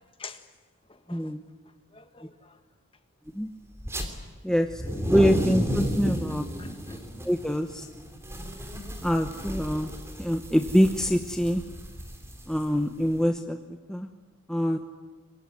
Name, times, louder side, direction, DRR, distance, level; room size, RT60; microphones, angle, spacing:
voice 1, 1.1-1.4 3.4-3.5 4.4-4.8 5.1-6.4 7.2-7.9 9.0-9.9 10.2-11.6 12.5-13.6 13.9-14.1 14.5-14.8, equal, 5° left, 1.0 m, -24 dB
voice 2, 1.9-2.6 6.1-7.0, left 2 dB, 25° left, 1.7 m, -41 dB
sound 1, 3.8-4.1 4.6-13.2, equal, 10° right, 3.2 m, -33 dB
25.5 x 23.5 x 9.8 m
head